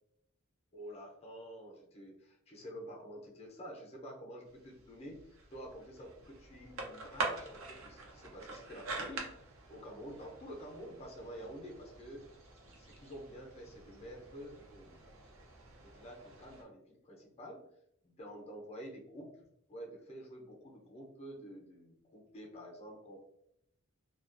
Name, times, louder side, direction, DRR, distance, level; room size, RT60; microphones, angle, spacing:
voice 1, 0.7-12.3 12.7-15.1 15.8-17.6 18.0-19.4 19.7-23.2, equal, 30° left, 0 dB, 0.5 m, -49 dB
sound 1, 4.5-16.6, right 3 dB, 70° right, 0.5 m, -46 dB
2.3 x 2.2 x 2.4 m, 0.76 s
head